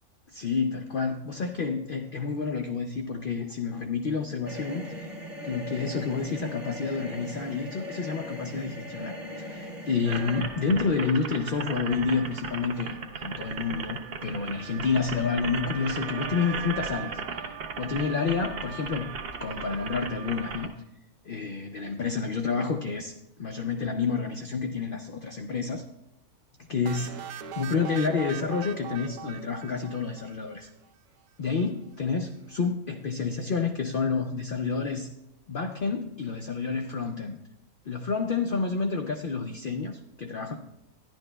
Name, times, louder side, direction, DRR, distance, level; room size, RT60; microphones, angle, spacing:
voice 1, 0.3-5.1 5.4-19.1 19.4-20.7 21.2-25.8 26.7-30.7 31.4-35.1 35.5-37.4 37.9-40.6, left 5 dB, 80° left, 5 dB, 0.4 m, -29 dB
sound 1, 4.4-10.4, left 1 dB, 35° right, 1.3 m, -39 dB
sound 2, 10.0-20.7, right 5 dB, 55° right, 0.7 m, -36 dB
sound 3, 26.8-30.6, right 8 dB, 75° right, 1.0 m, -40 dB
12.0 x 10.5 x 2.2 m, 0.88 s
omnidirectional pair, 1.6 m